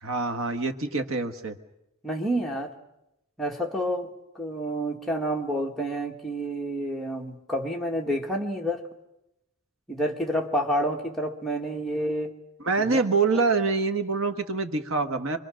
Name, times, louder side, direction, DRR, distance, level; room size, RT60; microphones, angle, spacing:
voice 1, 0.0-1.6 12.6-15.4, right 4 dB, 70° right, 7 dB, 1.4 m, -25 dB
voice 2, 2.0-2.7 3.4-4.1 4.4-8.8 9.9-12.3 12.8-13.0, equal, ahead, -1 dB, 1.9 m, -29 dB
26.0 x 23.0 x 6.4 m, 0.87 s
head